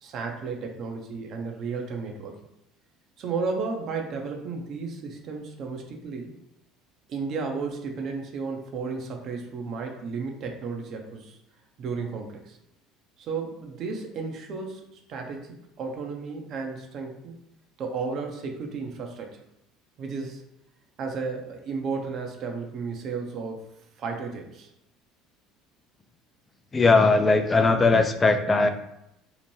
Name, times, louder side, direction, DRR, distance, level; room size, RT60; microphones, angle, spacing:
voice 1, 0.0-2.3 3.2-6.3 7.1-11.4 11.8-12.6 13.2-14.8 15.1-17.3 17.8-19.4 20.0-20.4 21.0-23.7 24.0-24.7, right 4 dB, 55° right, 2 dB, 0.5 m, -33 dB
voice 2, 26.7-28.7, left 3 dB, 25° left, 7 dB, 0.4 m, -19 dB
2.8 x 2.1 x 3.1 m, 0.83 s
hypercardioid pair, 70°, 0 cm